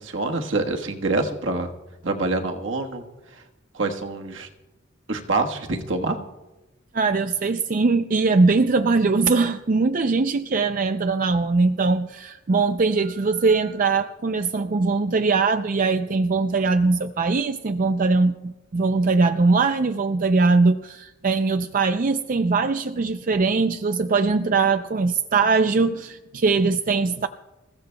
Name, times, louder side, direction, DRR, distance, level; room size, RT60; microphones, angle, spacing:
voice 1, 0.0-1.7 2.0-3.0 3.3-3.4 3.7-4.5 5.1-6.2, right 3 dB, 70° right, 3 dB, 1.4 m, -26 dB
voice 2, 6.9-27.3, right 4 dB, 45° right, 8 dB, 0.4 m, -21 dB
27.5 x 15.5 x 2.3 m, 1.1 s
head